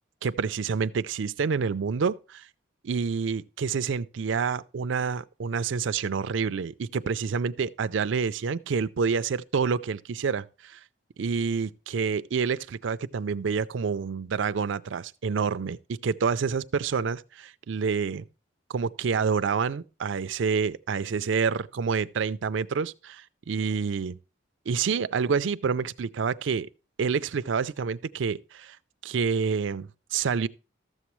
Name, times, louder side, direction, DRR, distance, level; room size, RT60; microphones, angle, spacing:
voice 1, 0.2-2.5 2.8-10.8 11.2-18.2 18.7-24.2 24.7-26.7 27.0-28.8 29.0-30.5, right 5 dB, 75° right, 0.4 m, -28 dB
13.0 x 7.2 x 3.1 m
head